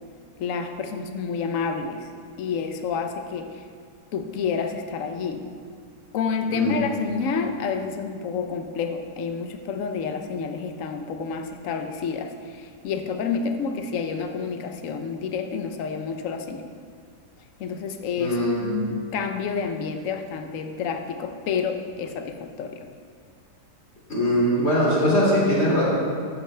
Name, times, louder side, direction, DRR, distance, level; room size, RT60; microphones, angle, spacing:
voice 1, 0.4-2.1 2.4-3.7 4.1-5.4 6.1-16.7 17.6-22.8, left 5 dB, 60° left, 6 dB, 1.1 m, -29 dB
voice 2, 18.2-18.7 24.1-25.8, equal, 45° left, -6 dB, 3.0 m, -21 dB
13.5 x 8.9 x 3.3 m, 2.2 s
omnidirectional pair, 1.7 m